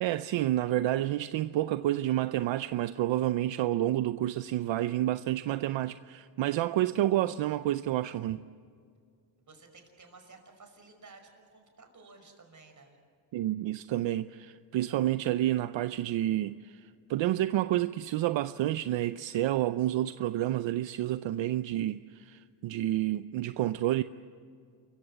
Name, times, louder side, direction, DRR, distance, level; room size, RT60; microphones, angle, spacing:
voice 1, 0.0-8.4 13.3-24.0, right 14 dB, 80° right, 0.7 m, -29 dB
voice 2, 9.4-13.0, right 3 dB, 40° right, 5.6 m, -54 dB
28.5 x 15.5 x 9.9 m
cardioid pair, 95°, 45 cm